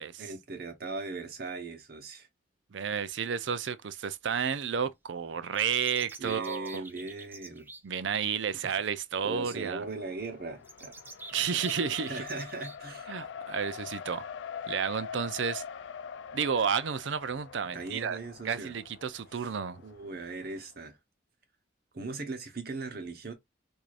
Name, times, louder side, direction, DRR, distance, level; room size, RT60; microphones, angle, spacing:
voice 1, 0.2-2.3 6.2-7.7 9.2-10.9 12.0-13.1 17.6-18.7 19.3-19.5 19.8-21.0 21.9-23.3, right 3 dB, 55° right, 0.9 m, -39 dB
voice 2, 2.7-6.8 7.8-9.8 11.3-12.2 13.1-14.2 14.7-15.6 16.3-18.2 18.4-19.8, right 7 dB, 75° right, 0.5 m, -31 dB
sound 1, 5.5-7.8 10.6-12.8, right 2 dB, 10° right, 0.5 m, -47 dB
Race car auto racing, 9.6-20.6, left 7 dB, 75° left, 0.3 m, -44 dB
4.6 x 2.7 x 2.4 m
head